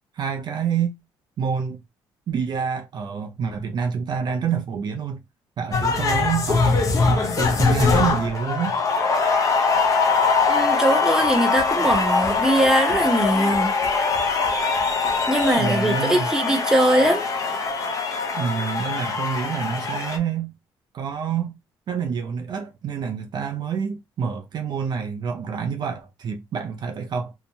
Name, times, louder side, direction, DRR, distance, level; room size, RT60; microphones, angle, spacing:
voice 1, 0.1-1.0 1.4-1.8 2.3-5.2 5.6-8.8 15.6-16.3 18.3-20.5 20.9-21.5 21.9-27.3, right 7 dB, 50° right, 0.5 m, -27 dB
sound 1, 5.7-20.2, left 4 dB, 35° left, 0.7 m, -22 dB
voice 2, 10.5-13.7 15.3-17.2, right 1 dB, 5° right, 0.8 m, -21 dB
2.7 x 2.1 x 2.7 m
cardioid pair, 100°, 9 cm